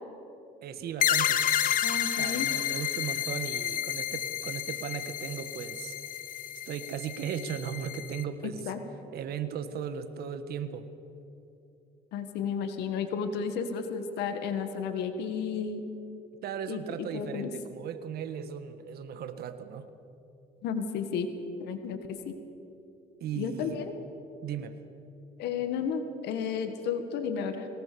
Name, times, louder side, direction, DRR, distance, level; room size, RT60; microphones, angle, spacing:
voice 1, 0.6-1.5 2.1-6.0 6.7-8.7 9.1-10.9 16.4-19.9 23.2-23.8 24.4-24.8, right 8 dB, 65° right, 11 dB, 1.5 m, -37 dB
sound 1, 1.0-8.2, left 10 dB, 55° left, 0.9 m, -30 dB
voice 2, 1.8-2.5 8.4-8.8 12.1-15.8 16.7-17.5 20.6-21.3 21.6-22.0 22.2-22.3 23.4-23.9 25.4-27.7, left 6 dB, 85° left, 8 dB, 1.8 m, -32 dB
22.5 x 18.5 x 6.9 m, 2.9 s
cardioid pair, 110°, 17 cm